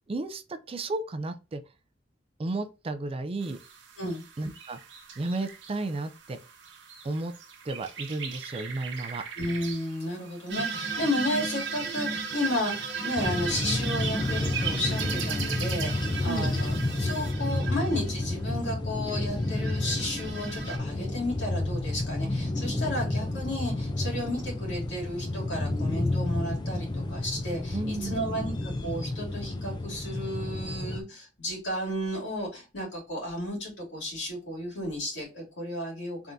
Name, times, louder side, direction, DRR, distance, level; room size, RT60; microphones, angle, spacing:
voice 1, 0.1-1.6 2.4-3.6 4.4-4.8 5.2-6.4 7.0-7.3 7.6-9.2 16.2-16.5 27.7-28.3, right 2 dB, 30° right, 0.4 m, -33 dB
sound 1, 3.4-17.3, right 7 dB, 90° right, 1.0 m, -42 dB
voice 2, 9.4-36.3, left 1 dB, 75° left, 2.5 m, -33 dB
Wind mixed, 10.5-18.3 19.4-20.8, right 4 dB, 65° right, 1.1 m, -35 dB
sound 2, 13.2-31.0, left 2 dB, 25° left, 0.5 m, -31 dB
3.7 x 3.5 x 2.6 m
head